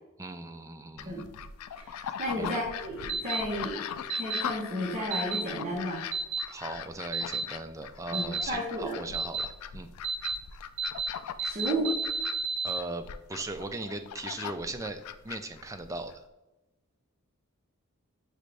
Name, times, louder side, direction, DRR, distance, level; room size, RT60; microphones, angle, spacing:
voice 1, 0.2-1.3 2.4-2.7 6.5-9.9 12.6-16.2, right 2 dB, 15° right, 8 dB, 0.3 m, -38 dB
sound 1, 1.0-16.2, left 8 dB, 85° left, 0.3 m, -40 dB
voice 2, 1.8-3.8 4.2-6.0 8.1-9.0 11.4-11.9, equal, 35° right, -5 dB, 0.9 m, -33 dB
sound 2, 3.1-3.4 4.1-4.4 5.1-5.4 6.1-6.4 7.1-7.4 8.1-8.4 9.1-9.5 10.0-10.4 10.8-11.1 11.4-12.8, right 5 dB, 85° right, 0.9 m, -31 dB
6.4 x 2.5 x 3.2 m, 1.0 s
head